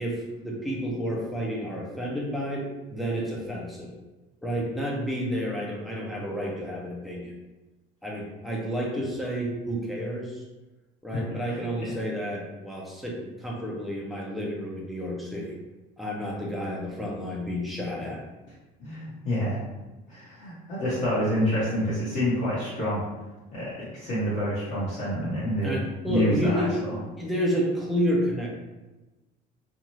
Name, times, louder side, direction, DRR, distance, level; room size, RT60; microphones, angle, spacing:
voice 1, 0.0-3.9 4.4-7.3 8.0-10.5 11.0-15.5 16.0-18.2 25.6-28.5, equal, ahead, -3 dB, 0.5 m, -30 dB
voice 2, 18.8-19.6 20.1-23.0 23.5-25.8 26.1-26.9, equal, 50° left, -11 dB, 1.1 m, -28 dB
2.6 x 2.4 x 3.0 m, 1.1 s
cardioid pair, 150°, 18 cm